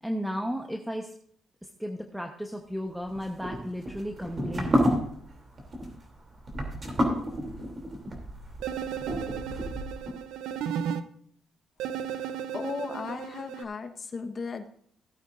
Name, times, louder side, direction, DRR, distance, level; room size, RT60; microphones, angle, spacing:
voice 1, 0.0-1.1 1.8-4.9, equal, 5° right, 3 dB, 1.0 m, -34 dB
sound 1, 3.1-10.1, equal, 35° right, 3.0 m, -30 dB
sound 2, 8.6-11.0 11.8-13.6, right 8 dB, 90° right, 0.6 m, -34 dB
voice 2, 12.2-14.7, left 4 dB, 40° left, 7 dB, 1.2 m, -36 dB
17.0 x 8.9 x 2.6 m, 0.64 s
cardioid pair, 90°, 0 cm